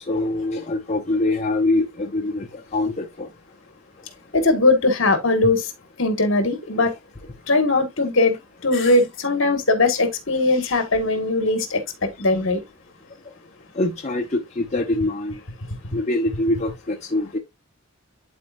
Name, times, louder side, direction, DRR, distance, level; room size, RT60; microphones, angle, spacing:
voice 1, 0.0-2.5 2.7-3.3 13.8-14.2 14.6-15.4 15.9-17.4, left 2 dB, 35° left, 0.8 m, -24 dB
voice 2, 4.3-5.6 6.0-6.9 7.5-8.4 8.6-11.8 12.2-12.6, left 2 dB, 60° left, 1.7 m, -19 dB
11.5 x 4.3 x 2.5 m
head